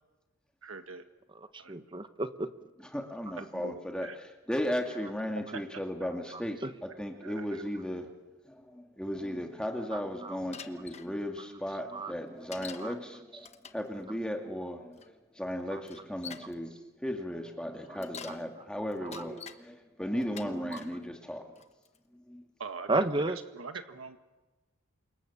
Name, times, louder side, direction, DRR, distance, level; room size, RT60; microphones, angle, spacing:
voice 1, 0.6-1.1 1.6-1.8 3.5-4.1 5.5-5.6 7.2-7.6 22.6-24.2, right 4 dB, 80° right, 7 dB, 1.7 m, -43 dB
voice 2, 1.3-2.5 5.1-5.2 5.5-5.6 6.3-6.7 7.6-7.9 9.9-10.4 11.4-12.1 12.8-13.0 13.3-13.5 14.4-14.6 15.7-15.8 16.8-16.9 17.9-18.0 18.3-18.7 19.0-19.5 20.3-21.0 22.9-23.4, right 2 dB, 25° right, 10 dB, 1.1 m, -35 dB
voice 3, 2.9-4.1 4.5-8.1 8.5-21.6 22.3-22.4, equal, 5° left, 3 dB, 2.3 m, -36 dB
Bicycle, 10.5-11.1 12.5-12.9 13.4-13.9 15.0-15.1 15.8-16.5 17.8-18.4 18.9-19.6 20.2-20.9 21.6-22.0, left 7 dB, 35° left, 1.2 m, -46 dB
29.0 x 26.0 x 7.2 m, 1.1 s
head